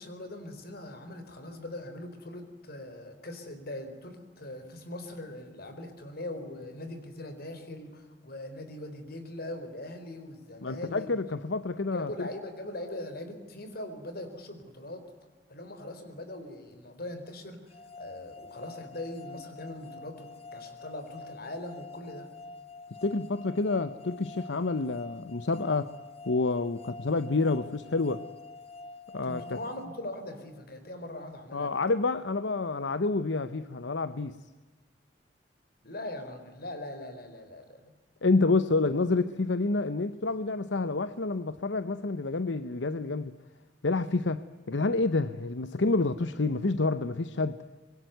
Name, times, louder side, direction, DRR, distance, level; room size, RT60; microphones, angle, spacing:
voice 1, 0.0-11.1 11.9-15.0 15.5-22.3 29.2-31.7 35.8-37.9, left 1 dB, 60° left, 4.3 m, -41 dB
voice 2, 10.6-12.3 23.0-25.9 26.3-28.2 29.1-29.6 31.5-34.4 38.2-43.3 43.8-47.6, left 3 dB, 80° left, 0.9 m, -28 dB
sound 1, 17.7-30.7, left 3 dB, 35° left, 1.7 m, -47 dB
25.5 x 22.0 x 9.3 m
head